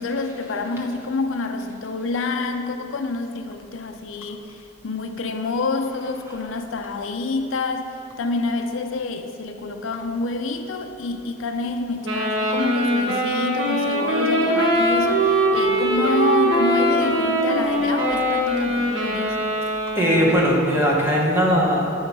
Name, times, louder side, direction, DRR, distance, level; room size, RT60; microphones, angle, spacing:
voice 1, 0.0-19.5, left 3 dB, 75° left, 6 dB, 0.5 m, -27 dB
Wind instrument woodwind instrument, 12.0-20.5, right 1 dB, 65° right, 1.3 m, -22 dB
voice 2, 19.7-21.9, equal, 10° right, -4 dB, 1.2 m, -19 dB
8.5 x 5.4 x 4.6 m, 2.5 s
head